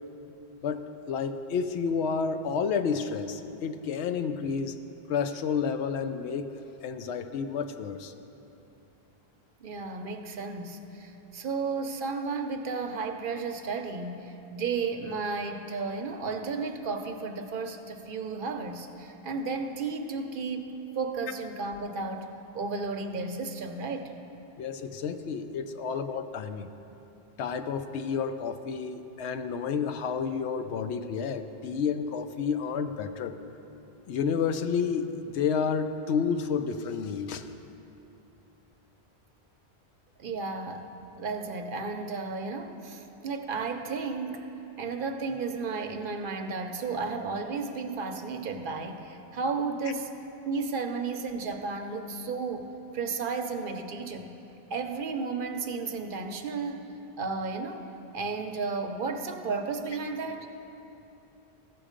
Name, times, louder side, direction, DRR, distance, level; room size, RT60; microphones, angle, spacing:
voice 1, 0.6-4.8 5.1-8.1 24.6-26.7 27.4-33.4 34.1-37.5, left 6 dB, 85° left, 9 dB, 0.9 m, -30 dB
voice 2, 9.6-22.3 22.5-24.1 40.2-40.9 41.2-50.1 50.5-54.3 54.7-56.9 57.2-57.8 58.1-60.5, right 4 dB, 60° right, 6 dB, 0.7 m, -33 dB
14.5 x 6.2 x 5.0 m, 2.9 s
omnidirectional pair, 1.1 m